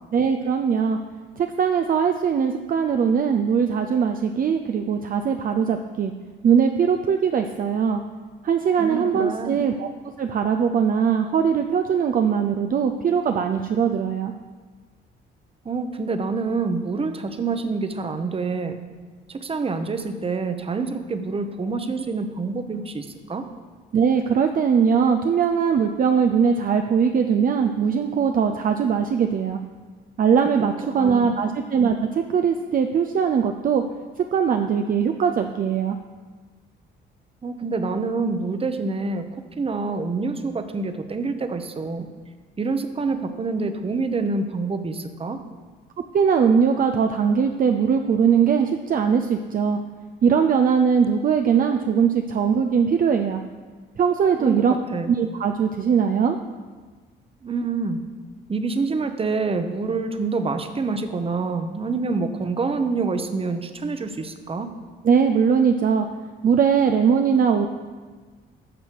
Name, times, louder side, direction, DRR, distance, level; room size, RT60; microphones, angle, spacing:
voice 1, 0.1-1.0 1.4-6.1 6.4-8.0 8.4-9.9 10.2-14.3 23.9-29.6 30.2-33.8 34.2-36.0 46.1-49.8 50.2-53.4 54.0-54.7 55.1-56.4 65.0-66.1 66.4-67.7, right 6 dB, 45° right, 5 dB, 0.5 m, -20 dB
voice 2, 8.8-9.6 15.6-18.8 19.3-23.4 30.6-30.7 31.0-31.3 37.4-39.3 39.6-42.1 42.6-45.4 54.4-54.6 54.9-55.1 57.4-58.0 58.5-64.7, right 4 dB, 30° right, 8 dB, 0.9 m, -27 dB
11.0 x 6.3 x 4.7 m, 1.4 s
cardioid pair, 90°, 20 cm